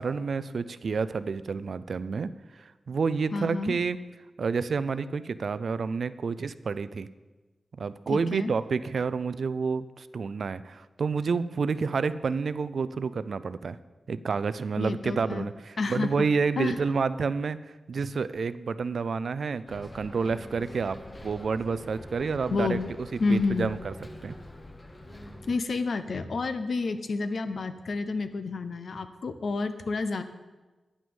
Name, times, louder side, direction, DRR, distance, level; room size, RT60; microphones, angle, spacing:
voice 1, 0.0-4.0 4.4-7.1 7.8-13.8 14.1-17.6 17.9-21.0 21.2-22.8 23.3-23.9 24.2-24.4, right 5 dB, 60° right, 15 dB, 0.4 m, -29 dB
voice 2, 3.3-3.8 8.1-8.5 14.8-15.5 15.8-16.3 16.6-16.8 22.5-22.9 23.2-23.7 25.5-30.2, left 3 dB, 55° left, 10 dB, 0.7 m, -29 dB
Bus, 19.7-25.6, left 1 dB, 20° left, 0.8 m, -44 dB
9.7 x 6.2 x 7.0 m, 1.2 s
wide cardioid pair, 150°, 0 cm